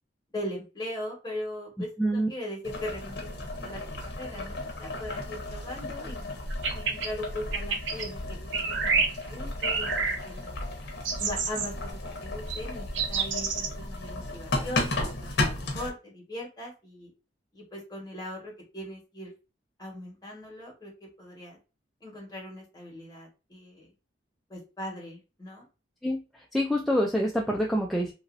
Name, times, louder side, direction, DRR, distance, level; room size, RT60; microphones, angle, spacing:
voice 1, 0.3-6.4 6.7-8.4 8.8-10.5 11.2-17.1 17.5-19.3 19.8-21.6 22.0-23.9 24.5-25.7, left 1 dB, 20° left, -2 dB, 1.3 m, -40 dB
Boiling, 2.6-15.9, left 2 dB, 65° left, 0.8 m, -34 dB
sound 1, 6.5-7.1 7.5-8.1 8.5-9.1 9.6-10.2 11.0-11.7 12.5-12.6 12.9-13.7, right 5 dB, 90° right, 0.5 m, -28 dB
voice 2, 26.5-28.1, equal, ahead, -1 dB, 0.3 m, -26 dB
2.9 x 2.7 x 2.5 m, 0.31 s
head